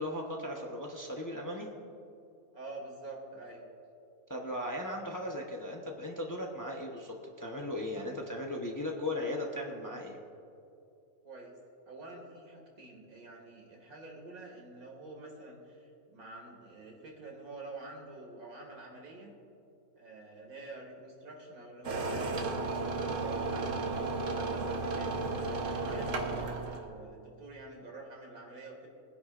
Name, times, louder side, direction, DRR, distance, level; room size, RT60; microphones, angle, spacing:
voice 1, 0.0-1.7 4.3-10.2, left 1 dB, 15° left, 0 dB, 0.8 m, -37 dB
voice 2, 2.5-3.7 11.2-11.5 11.9-19.3 20.0-22.7 23.2-28.9, right 2 dB, 85° right, -1 dB, 2.6 m, -48 dB
sound 1, 21.8-26.9, right 3 dB, 65° right, 1.4 m, -33 dB
21.5 x 10.0 x 2.5 m, 2.6 s
omnidirectional pair, 1.5 m